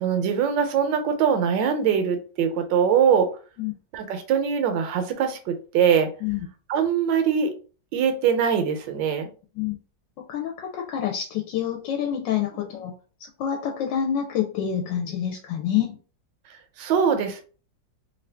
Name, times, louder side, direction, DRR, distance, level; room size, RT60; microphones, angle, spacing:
voice 1, 0.0-3.3 3.9-6.1 6.7-7.5 7.9-9.3 16.8-17.4, right 7 dB, 85° right, 7 dB, 1.3 m, -22 dB
voice 2, 10.3-12.9 13.4-16.0, left 9 dB, 85° left, 2 dB, 1.3 m, -27 dB
3.1 x 2.6 x 3.3 m, 0.38 s
omnidirectional pair, 2.0 m